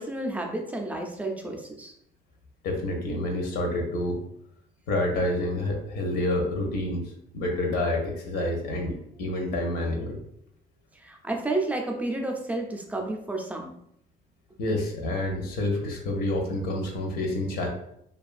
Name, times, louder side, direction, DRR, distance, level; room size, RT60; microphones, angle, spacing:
voice 1, 0.0-1.9 11.0-13.7, right 2 dB, 10° right, 2 dB, 0.4 m, -31 dB
voice 2, 2.6-4.2 4.9-10.2 14.6-17.7, left 1 dB, 80° left, 2 dB, 0.6 m, -28 dB
2.4 x 2.3 x 2.4 m, 0.74 s
cardioid pair, 110°, 17 cm